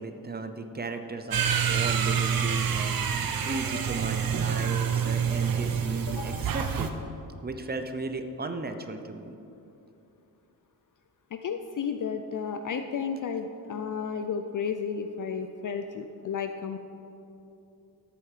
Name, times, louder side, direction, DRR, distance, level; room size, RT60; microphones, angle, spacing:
voice 1, 0.0-3.0 3.4-6.9 7.4-9.4, right 3 dB, 25° right, 7 dB, 0.7 m, -35 dB
sound 1, 1.3-6.9, right 7 dB, 60° right, 0.9 m, -27 dB
voice 2, 6.1-6.4 11.3-16.8, left 6 dB, 55° left, 7 dB, 0.5 m, -33 dB
13.5 x 8.4 x 5.0 m, 2.9 s
wide cardioid pair, 160°, 39 cm